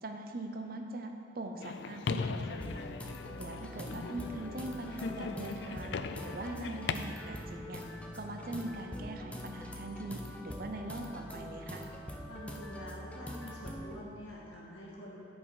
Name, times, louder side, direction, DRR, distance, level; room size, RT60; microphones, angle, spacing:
voice 1, 0.0-2.8 3.4-7.8 8.1-11.9, right 2 dB, 50° right, 4 dB, 0.7 m, -42 dB
sound 1, 1.6-6.9, left 5 dB, 65° left, 0.3 m, -39 dB
sound 2, 2.5-14.0, equal, 5° left, 0.5 m, -44 dB
voice 2, 3.3-3.7 12.3-15.2, left 1 dB, 85° left, -5 dB, 2.1 m, -47 dB
10.5 x 5.4 x 4.9 m, 2.5 s
head